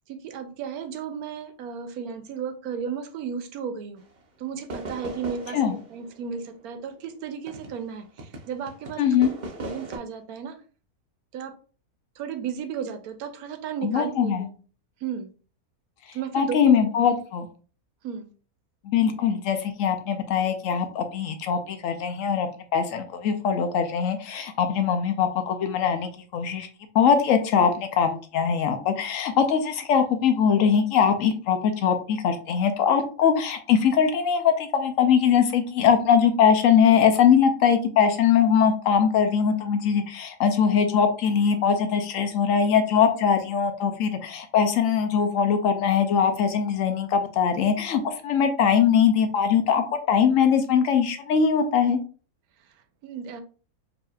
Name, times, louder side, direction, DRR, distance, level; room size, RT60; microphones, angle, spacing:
voice 1, 0.1-4.0 4.4-9.0 9.6-10.6 11.3-11.5 12.2-14.5 15.0-15.3 16.1-16.8 17.0-17.1 18.0-18.3 53.0-53.4, right 7 dB, 80° right, 8 dB, 1.1 m, -34 dB
sound 1, 4.0-4.2 4.7-7.9 8.2-10.0, right 2 dB, 45° right, 0.6 m, -38 dB
voice 2, 9.0-9.3 13.8-14.5 16.3-17.5 18.8-26.7 26.9-52.0, left 7 dB, 65° left, 7 dB, 0.9 m, -21 dB
4.9 x 2.7 x 2.4 m, 0.38 s
omnidirectional pair, 1.6 m